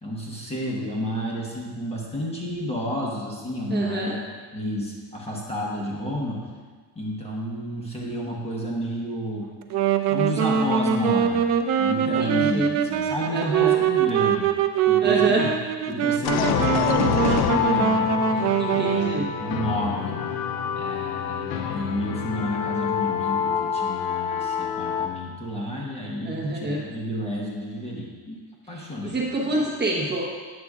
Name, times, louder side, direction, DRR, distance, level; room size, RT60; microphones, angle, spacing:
voice 1, 0.0-4.2 4.5-6.4 6.9-9.5 10.1-11.5 11.8-14.5 14.9-15.4 15.9-18.1 18.7-20.2 20.7-28.4 28.7-29.5, equal, 15° left, -3 dB, 1.1 m, -31 dB
voice 2, 3.7-4.2 12.0-12.7 13.3-13.7 15.0-15.5 18.3-19.3 26.2-26.8 28.7-30.2, right 2 dB, 25° right, -3 dB, 1.0 m, -27 dB
Wind instrument woodwind instrument, 9.6-19.3, right 8 dB, 40° right, 0.4 m, -23 dB
sound 1, 16.2-25.1, left 8 dB, 60° left, 0.6 m, -26 dB
9.5 x 7.6 x 2.4 m, 1.5 s
cardioid pair, 140°, 45 cm